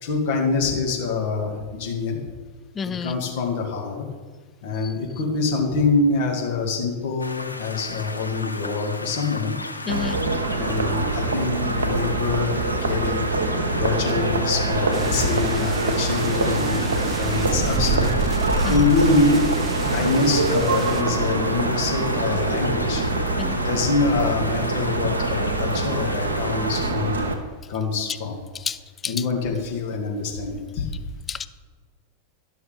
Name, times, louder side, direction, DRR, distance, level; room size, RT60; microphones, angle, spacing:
voice 1, 0.0-2.2 3.0-4.0 4.6-9.5 10.5-12.5 12.8-13.3 13.7-18.1 18.7-19.4 19.9-23.0 23.5-27.3 27.7-28.4 29.1-30.9, left 4 dB, 50° left, 0 dB, 2.1 m, -25 dB
voice 2, 2.8-3.2 4.8-4.9 9.9-10.2 18.6-18.9 23.4-23.6 28.5-29.2 31.3-31.5, left 6 dB, 20° left, 14 dB, 0.4 m, -30 dB
sound 1, 7.2-26.9, left 2 dB, 85° left, 0.6 m, -36 dB
sound 2, 9.9-27.4, right 2 dB, 70° right, 1.1 m, -24 dB
sound 3, 14.9-21.0, right 4 dB, 20° right, 0.7 m, -30 dB
12.0 x 6.3 x 5.1 m, 1.5 s
figure-of-eight pair, 90°, 0 cm